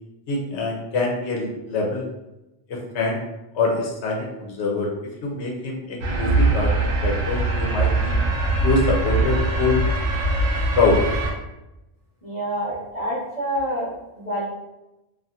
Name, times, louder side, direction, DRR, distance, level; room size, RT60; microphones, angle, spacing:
voice 1, 0.3-2.1 2.7-3.2 3.5-4.9 5.2-8.2 8.6-9.8 10.8-11.0, left 3 dB, 80° left, -1 dB, 0.9 m, -24 dB
sound 1, 6.0-11.3, right 2 dB, 85° right, 0.9 m, -22 dB
voice 2, 12.2-13.9 14.1-14.4, equal, 35° left, -11 dB, 0.9 m, -27 dB
2.7 x 2.5 x 2.4 m, 0.94 s
omnidirectional pair, 1.1 m